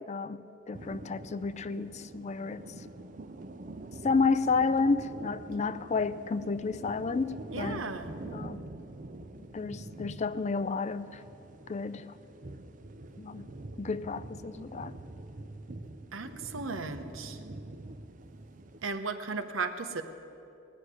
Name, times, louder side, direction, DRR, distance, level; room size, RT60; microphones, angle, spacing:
voice 1, 0.1-2.7 4.0-7.8 8.3-8.6 9.4-11.2 11.7-12.1 13.2-13.5 13.8-15.0, left 4 dB, 35° left, 0.4 m, -31 dB
sound 1, 0.7-18.9, right 2 dB, 40° right, 0.6 m, -45 dB
voice 2, 7.5-8.1 16.1-17.4 18.8-20.0, right 4 dB, 75° right, 0.9 m, -35 dB
18.5 x 6.5 x 9.7 m
head